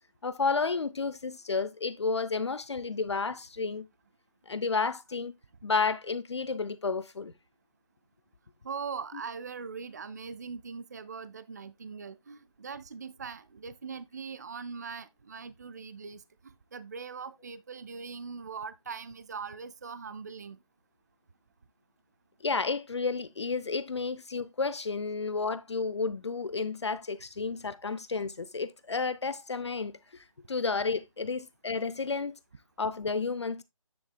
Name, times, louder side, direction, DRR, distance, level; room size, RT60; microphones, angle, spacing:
voice 1, 0.2-3.9 4.5-5.3 5.6-7.3 22.4-32.3 32.8-33.6, left 4 dB, 55° left, 0.7 m, -31 dB
voice 2, 8.6-20.6, right 5 dB, 30° right, 0.4 m, -41 dB
9.4 x 8.1 x 2.2 m
figure-of-eight pair, 155°, 17 cm